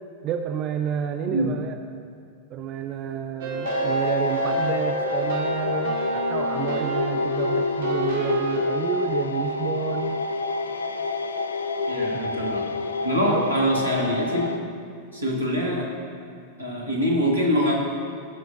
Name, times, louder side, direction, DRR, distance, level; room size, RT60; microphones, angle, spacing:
voice 1, 0.2-1.7 2.5-10.2 12.1-12.2 13.3-13.5, right 8 dB, 35° right, 6 dB, 0.4 m, -30 dB
sound 1, 3.4-8.6, right 2 dB, 55° right, 1.1 m, -30 dB
sound 2, 3.6-14.6, left 3 dB, 75° left, 0.3 m, -27 dB
voice 2, 11.9-12.7 13.0-14.6 15.1-15.9 16.6-17.7, equal, 85° right, -2 dB, 1.4 m, -24 dB
15.0 x 6.2 x 2.6 m, 2.3 s
figure-of-eight pair, 90°, 0 cm